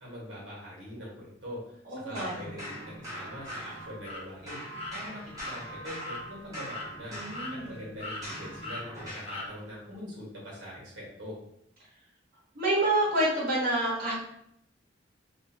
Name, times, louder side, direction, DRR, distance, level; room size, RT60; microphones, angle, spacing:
voice 1, 0.0-7.2 7.5-11.3, equal, 85° right, -5 dB, 1.2 m, -43 dB
voice 2, 1.9-2.6 7.1-7.8 12.5-14.1, right 1 dB, 55° right, -7 dB, 1.1 m, -28 dB
sound 1, 2.1-4.2 4.5-9.4, equal, 20° right, 1.0 m, -42 dB
sound 2, 3.4-3.6 4.0-4.2 4.7-4.9 5.3-5.5 6.0-6.2 6.7-6.9 7.3-7.8 8.0-8.2 8.6-8.8 9.3-9.5, left 2 dB, 35° left, 0.5 m, -39 dB
2.6 x 2.3 x 2.7 m, 0.74 s
head